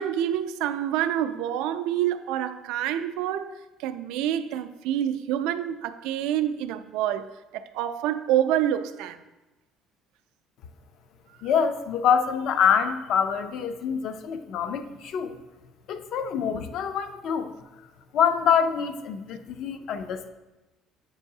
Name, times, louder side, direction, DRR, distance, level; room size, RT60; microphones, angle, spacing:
voice 1, 0.0-7.3 7.5-9.2, right 11 dB, 85° right, 0.3 m, -27 dB
voice 2, 11.4-15.4 15.9-17.5 18.1-20.3, left 7 dB, 55° left, 0.4 m, -25 dB
8.0 x 4.6 x 2.7 m
cardioid pair, 155°, 0 cm